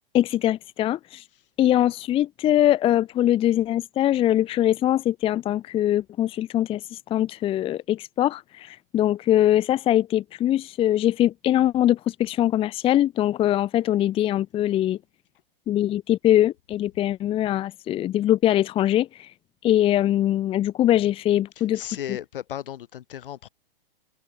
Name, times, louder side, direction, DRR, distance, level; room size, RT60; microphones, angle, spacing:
voice 1, 0.1-1.2 1.6-15.0 15.7-19.3 19.6-21.8, left 12 dB, 20° left, 0.8 m, -22 dB
voice 2, 21.6-23.5, left 11 dB, 65° left, 3.7 m, -36 dB
open air
hypercardioid pair, 125°, 29 cm